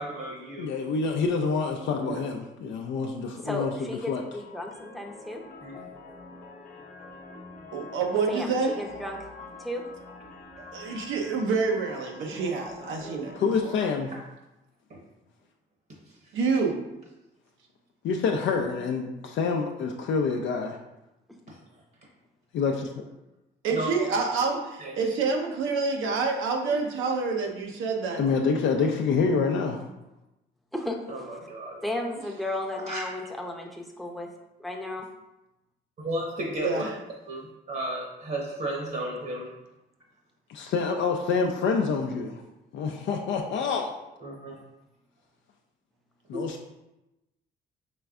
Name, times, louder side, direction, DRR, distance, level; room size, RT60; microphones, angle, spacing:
voice 1, 0.0-0.7 5.6-5.8 14.1-14.2 21.5-21.6 23.7-24.1 24.8-25.0 31.1-31.8 32.8-33.0 36.0-36.9 37.3-39.5 44.2-44.5 46.3-46.5, right 1 dB, 50° right, -2 dB, 1.0 m, -33 dB
voice 2, 0.6-4.2 13.4-14.1 18.0-20.8 22.5-23.0 28.2-29.8 40.5-42.4 42.7-43.9 46.3-46.7, left 5 dB, 70° left, 2 dB, 0.4 m, -27 dB
voice 3, 3.4-5.4 8.3-9.2 9.6-9.8 12.3-12.5 30.7-31.4 31.8-34.3 34.6-35.1, left 1 dB, ahead, 0 dB, 0.6 m, -34 dB
sound 1, 4.3-13.6, left 3 dB, 40° left, 0.8 m, -45 dB
voice 4, 7.7-8.8 10.7-13.3 13.6-13.7 16.3-16.8 23.6-28.2 36.6-36.9, right 4 dB, 85° right, 2 dB, 0.7 m, -27 dB
5.1 x 3.3 x 2.4 m, 0.95 s
cardioid pair, 90°, 20 cm